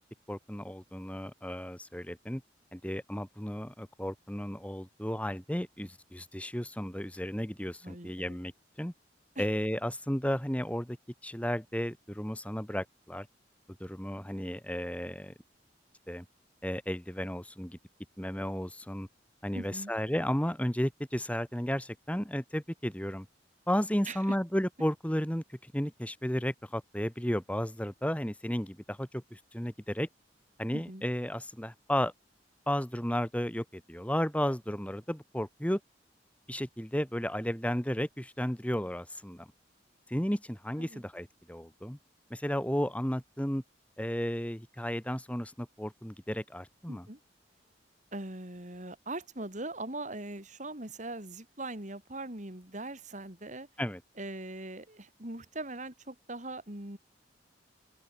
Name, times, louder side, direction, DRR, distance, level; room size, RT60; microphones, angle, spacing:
voice 1, 0.3-2.4 2.7-8.5 8.8-8.9 9.4-11.0 11.2-13.3 13.8-15.3 16.1-16.2 16.6-17.8 18.2-19.1 19.4-23.3 23.7-30.1 30.6-32.1 32.7-35.8 36.5-39.5 40.1-42.0 42.3-43.6 44.0-47.1 53.8-54.0, equal, 10° left, 2.7 m, -33 dB
voice 2, 7.8-8.4 9.4-9.5 19.5-19.9 24.1-24.2 30.7-31.0 40.8-41.0 46.9-47.2 48.1-53.7 54.2-57.0, right 2 dB, 45° right, 4.4 m, -41 dB
open air
head